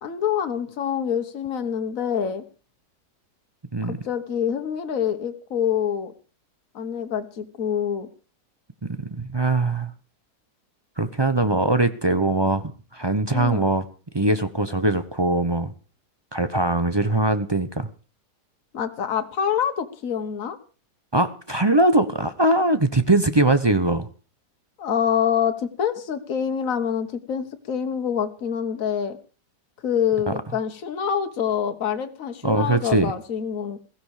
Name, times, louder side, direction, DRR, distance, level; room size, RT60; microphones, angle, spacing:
voice 1, 0.0-2.4 3.8-6.1 6.7-8.1 13.3-13.6 18.7-20.6 24.8-29.2 29.8-33.8, left 8 dB, 55° left, 7 dB, 1.7 m, -26 dB
voice 2, 9.0-9.9 11.0-12.6 12.9-13.8 14.1-15.7 16.3-17.9 21.1-24.1 30.3-30.4 32.4-33.1, right 2 dB, 30° right, 11 dB, 0.5 m, -21 dB
16.0 x 15.0 x 4.9 m, 0.36 s
omnidirectional pair, 1.8 m